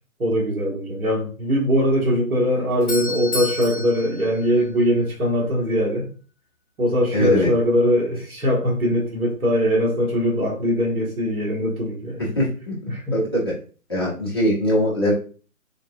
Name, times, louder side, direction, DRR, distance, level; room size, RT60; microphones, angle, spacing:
voice 1, 0.2-6.1 6.8-12.2 12.9-13.1, equal, 80° right, -2 dB, 1.3 m, -21 dB
Doorbell, 2.4-5.3, left 3 dB, ahead, 0.9 m, -32 dB
voice 2, 7.1-7.5 12.4-12.7 13.1-13.5 13.9-15.1, equal, 20° left, -8 dB, 0.5 m, -21 dB
3.6 x 2.2 x 2.3 m, 0.38 s
hypercardioid pair, 155°, 43 cm